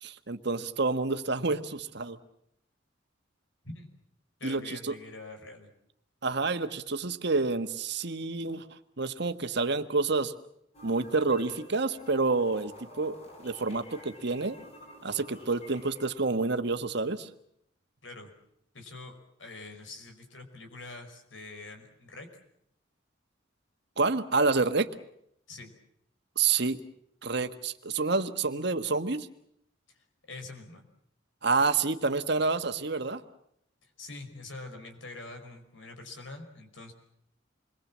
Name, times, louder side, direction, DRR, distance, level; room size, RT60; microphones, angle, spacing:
voice 1, 0.0-2.2 4.4-4.9 6.2-8.6 9.0-10.3 10.8-14.6 15.0-17.3 24.0-24.9 26.4-26.8 27.2-29.3 31.4-33.2, right 3 dB, 60° right, 9 dB, 1.5 m, -28 dB
voice 2, 4.4-5.7 18.0-18.3 18.7-22.3 25.5-25.7 30.3-30.9 33.8-36.9, left 2 dB, 85° left, 5 dB, 5.2 m, -45 dB
sound 1, 10.7-16.1, left 1 dB, 30° left, 7.5 m, -50 dB
28.0 x 22.0 x 7.4 m, 0.73 s
head